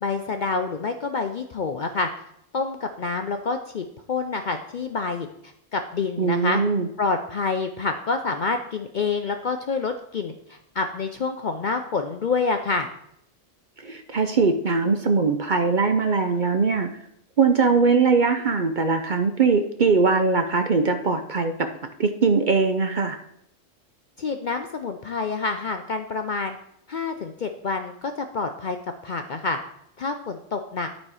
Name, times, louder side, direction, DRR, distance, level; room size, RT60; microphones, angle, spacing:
voice 1, 0.0-2.1 2.5-6.6 7.0-12.9 24.2-26.6 26.9-28.8 29.0-29.6 30.0-30.9, left 4 dB, 55° left, 6 dB, 0.5 m, -27 dB
voice 2, 6.2-6.9 13.8-16.9 17.4-21.5 22.0-23.2, right 4 dB, 50° right, 7 dB, 0.6 m, -21 dB
11.5 x 4.3 x 4.8 m, 0.73 s
omnidirectional pair, 1.3 m